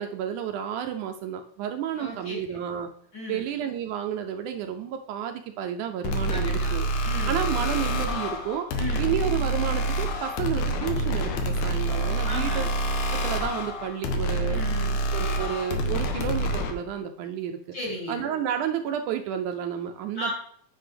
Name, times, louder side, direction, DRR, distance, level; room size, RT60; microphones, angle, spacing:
voice 1, 0.0-2.9 3.3-6.9 7.3-8.7 9.0-12.7 13.1-14.6 15.1-17.6 18.1-20.3, right 9 dB, 80° right, 5 dB, 1.9 m, -31 dB
voice 2, 2.0-2.4 3.1-3.4 6.3-7.4 8.8-9.1 12.2-12.7 14.5-15.0 17.7-18.3 20.1-20.3, equal, 35° left, -4 dB, 2.9 m, -35 dB
sound 1, 6.0-16.7, right 1 dB, 70° left, 2.2 m, -27 dB
9.5 x 6.1 x 3.3 m, 0.63 s
omnidirectional pair, 3.6 m